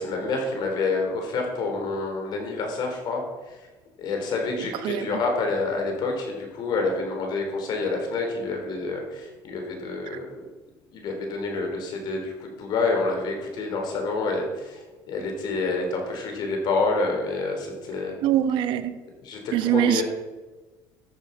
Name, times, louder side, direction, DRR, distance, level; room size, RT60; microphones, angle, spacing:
voice 1, 0.0-3.7 4.0-10.5 10.9-18.2 19.2-20.0, left 3 dB, 55° left, 2 dB, 3.8 m, -28 dB
voice 2, 4.8-5.2 10.1-10.2 18.2-19.0 19.5-20.0, right 11 dB, 65° right, 11 dB, 0.9 m, -23 dB
13.5 x 7.2 x 5.8 m, 1.2 s
cardioid pair, 115°, 9 cm